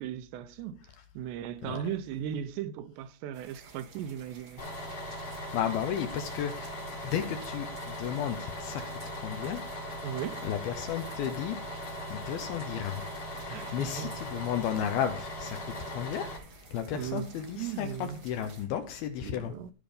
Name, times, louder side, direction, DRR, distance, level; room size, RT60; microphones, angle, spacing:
voice 1, 0.0-4.6 10.0-10.5 13.5-14.1 16.9-17.3 17.6-18.2 19.2-19.7, right 9 dB, 85° right, 2.8 m, -37 dB
sound 1, 3.3-18.6, right 5 dB, 40° right, 1.9 m, -54 dB
Bus, 4.6-16.4, left 1 dB, 40° left, 4.2 m, -39 dB
voice 2, 5.2-9.6 10.4-13.0 13.4-16.3 16.7-19.5, left 9 dB, 75° left, 2.3 m, -34 dB
15.0 x 5.2 x 5.1 m
omnidirectional pair, 5.1 m